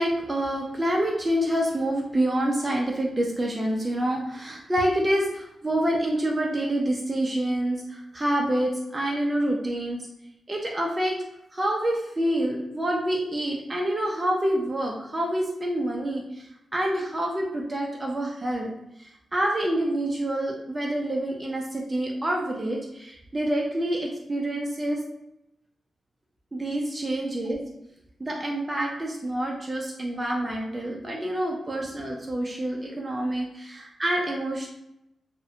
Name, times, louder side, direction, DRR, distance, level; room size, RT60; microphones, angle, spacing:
voice 1, 0.0-10.0 10.5-11.2 11.5-18.7 19.0-25.0 26.5-27.6 28.2-34.7, right 1 dB, 20° right, -1 dB, 0.3 m, -27 dB
2.5 x 2.0 x 2.7 m, 0.86 s
wide cardioid pair, 135°, 0 cm